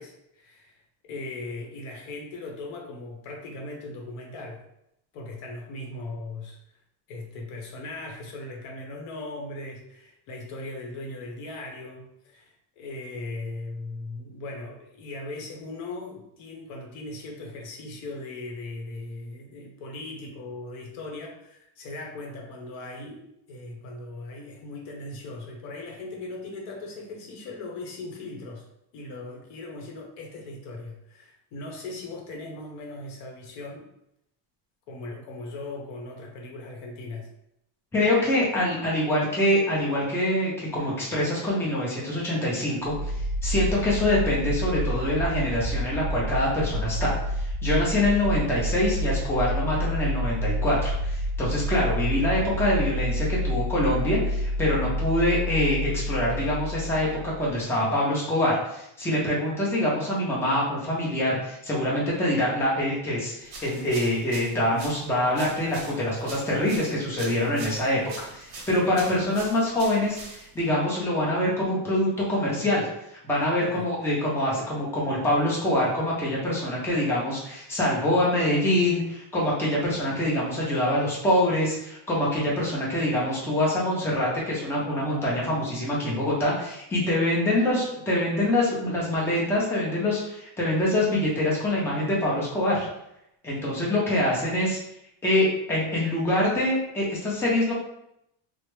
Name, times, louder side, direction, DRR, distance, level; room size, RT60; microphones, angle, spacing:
voice 1, 0.0-4.7 5.1-6.6 7.1-28.7 28.9-33.9 34.9-37.3 73.6-73.9, left 2 dB, 90° left, 1 dB, 1.0 m, -39 dB
voice 2, 37.9-72.9 73.2-92.9 93.4-94.8 95.2-97.7, left 1 dB, 5° left, -5 dB, 0.5 m, -25 dB
sound 1, 42.8-57.6, equal, 90° right, 0.5 m, -29 dB
sound 2, 63.4-70.7, right 3 dB, 50° right, 0.9 m, -43 dB
3.2 x 2.0 x 3.1 m, 0.79 s
cardioid pair, 160°, 49 cm